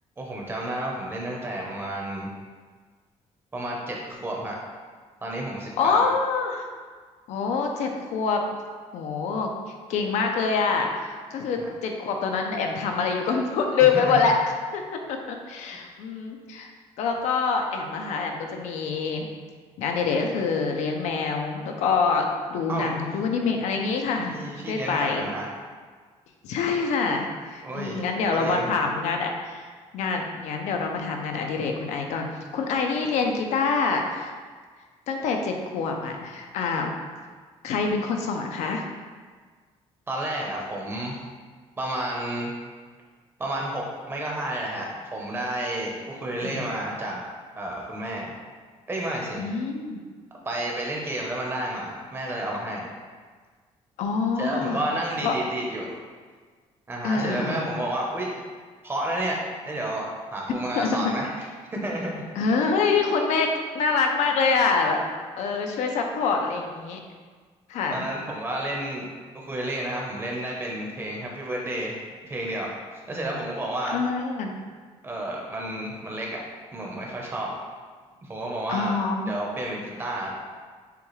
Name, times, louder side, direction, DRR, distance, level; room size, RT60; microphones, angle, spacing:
voice 1, 0.2-2.3 3.5-4.6 5.2-6.1 11.6-11.7 13.8-14.2 15.7-15.8 22.7-23.0 24.3-25.5 27.6-28.8 40.1-41.2 41.8-42.5 43.4-47.2 47.6-48.3 48.9-49.4 50.5-52.9 54.4-55.9 56.9-58.4 58.8-61.5 61.8-62.3 67.9-69.1 69.3-72.7 73.1-74.0 75.0-76.4 76.7-77.5 78.2-78.9 79.3-80.3, right 1 dB, 20° right, -2 dB, 0.7 m, -31 dB
voice 2, 5.8-6.7 7.3-8.4 8.9-9.5 9.9-14.3 14.7-14.8 15.1-16.7 17.0-19.3 19.8-22.3 22.5-25.3 26.4-29.7 29.9-32.3 32.5-34.3 35.1-36.9 37.6-38.8 46.2-46.7 49.4-50.0 54.0-54.8 55.2-55.3 57.0-57.7 60.8-61.1 62.4-65.0 65.4-67.0 67.7-68.1 73.9-74.5 78.7-79.4, left 5 dB, 90° left, 3 dB, 0.6 m, -25 dB
6.7 x 2.3 x 3.1 m, 1.5 s
cardioid pair, 160°, 12 cm